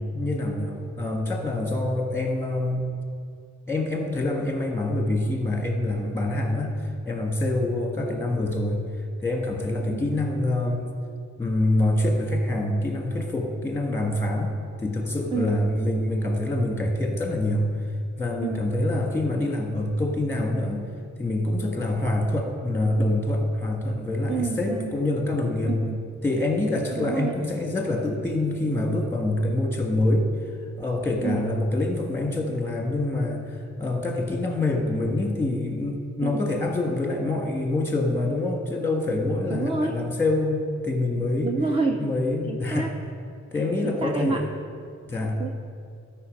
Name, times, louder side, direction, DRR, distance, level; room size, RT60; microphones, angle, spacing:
voice 1, 0.0-2.9 3.7-8.8 9.2-10.9 11.4-17.7 18.2-20.8 21.2-25.8 26.2-30.3 30.8-41.5 42.0-42.9 43.5-44.5 45.1-45.4, left 1 dB, 10° left, 0 dB, 1.6 m, -26 dB
voice 2, 24.3-24.9 25.6-26.0 27.0-27.3 31.2-31.4 36.2-36.4 39.5-39.9 41.4-42.0 42.5-42.9 43.8-44.4 45.4-45.5, right 4 dB, 20° right, 3 dB, 0.5 m, -28 dB
12.5 x 5.1 x 5.3 m, 2.2 s
cardioid pair, 85°, 30 cm